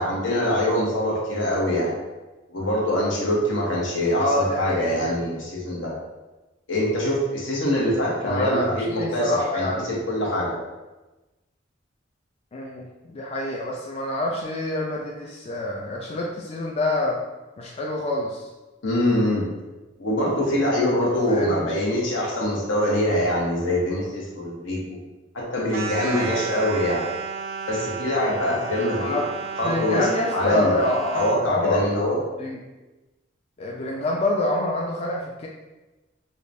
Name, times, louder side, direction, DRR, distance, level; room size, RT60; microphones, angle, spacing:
voice 1, 0.0-1.9 2.5-5.9 6.7-10.6 18.8-19.4 20.0-24.8 25.3-27.0 27.7-29.2 29.6-30.1 30.3-30.8 31.1-32.2, left 1 dB, 80° left, -4 dB, 1.0 m, -24 dB
voice 2, 4.2-5.1 8.2-9.9 12.5-17.2 17.6-18.5 21.3-21.7 29.0-29.3 29.6-31.9 32.4-32.6 33.6-35.5, left 1 dB, 30° left, -1 dB, 0.3 m, -26 dB
sound 1, 25.7-31.5, right 5 dB, 85° right, 0.4 m, -33 dB
4.8 x 2.2 x 2.6 m, 1.1 s
head